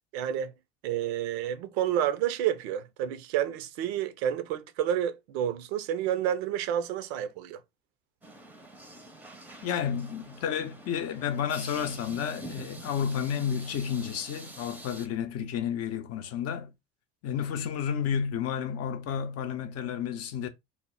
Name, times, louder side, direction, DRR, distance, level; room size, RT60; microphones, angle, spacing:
voice 1, 0.1-0.5 0.8-7.6, right 10 dB, 75° right, 0.5 m, -29 dB
sound 1, 8.2-15.1, right 2 dB, 5° right, 0.6 m, -46 dB
voice 2, 9.6-16.7 17.2-20.5, left 8 dB, 50° left, 0.5 m, -31 dB
2.1 x 2.0 x 3.6 m
hypercardioid pair, 65°, 32 cm